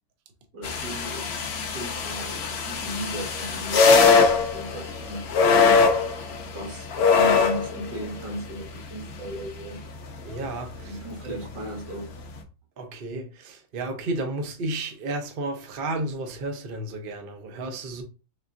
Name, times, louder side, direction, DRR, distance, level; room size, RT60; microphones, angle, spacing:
voice 1, 0.5-9.8 10.8-12.1, equal, 85° right, 2.2 m, -37 dB
sound 1, 0.6-12.4, left 5 dB, 70° left, 0.6 m, -24 dB
voice 2, 10.2-10.9 11.2-11.4 12.8-18.0, right 2 dB, 55° right, 0.6 m, -32 dB
4.1 x 3.5 x 2.5 m
omnidirectional pair, 1.9 m